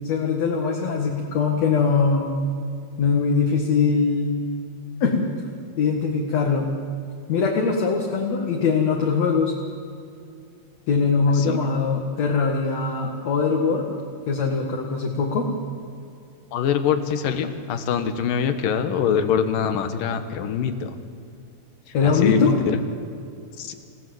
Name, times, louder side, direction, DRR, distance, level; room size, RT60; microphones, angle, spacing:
voice 1, 0.0-2.3 3.0-4.4 5.0-5.3 5.8-6.7 7.3-9.5 10.9-13.9 14.3-15.5 21.9-22.6, left 5 dB, 55° left, 0 dB, 2.8 m, -22 dB
voice 2, 11.3-11.6 16.5-21.0 22.0-22.8 23.6-23.7, left 7 dB, 80° left, 9 dB, 2.9 m, -24 dB
28.0 x 17.0 x 7.8 m, 2.5 s
omnidirectional pair, 3.9 m